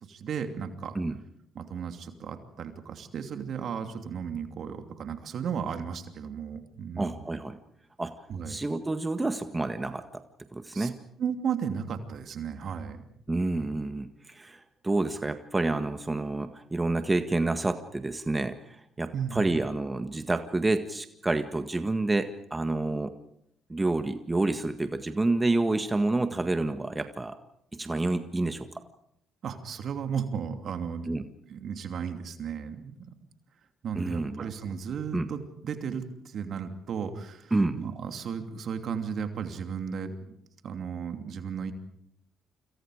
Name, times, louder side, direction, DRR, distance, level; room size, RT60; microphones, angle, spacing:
voice 1, 0.0-0.9 1.5-7.3 8.3-8.6 10.7-10.9 11.2-13.0 19.1-19.5 29.4-31.1 31.5-33.1 33.8-40.1 40.6-41.7, right 7 dB, 60° right, 7 dB, 2.8 m, -34 dB
voice 2, 7.0-7.6 8.0-8.1 8.5-10.2 10.5-11.0 13.3-23.1 23.7-27.4 27.7-28.7 31.1-31.2 33.9-34.5 35.1-35.3 37.5-37.8, right 2 dB, 20° right, 8 dB, 1.7 m, -29 dB
29.0 x 26.5 x 5.1 m, 0.75 s
hypercardioid pair, 50°, 0 cm